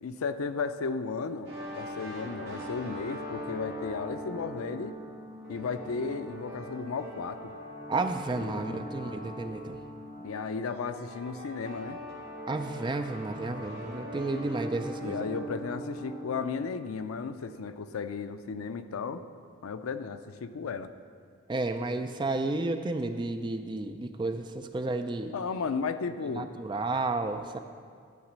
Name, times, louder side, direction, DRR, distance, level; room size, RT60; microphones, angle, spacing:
voice 1, 0.0-5.0 5.5-7.5 8.3-8.8 10.2-12.0 15.0-19.2 19.6-20.9 25.3-26.5, left 5 dB, 85° left, 11 dB, 0.4 m, -34 dB
sound 1, 1.4-16.4, equal, 50° right, 1.6 m, -41 dB
voice 2, 7.9-9.8 12.5-15.3 21.5-25.3 26.4-27.6, right 2 dB, 20° right, 7 dB, 0.3 m, -32 dB
11.5 x 4.1 x 7.3 m, 2.1 s
head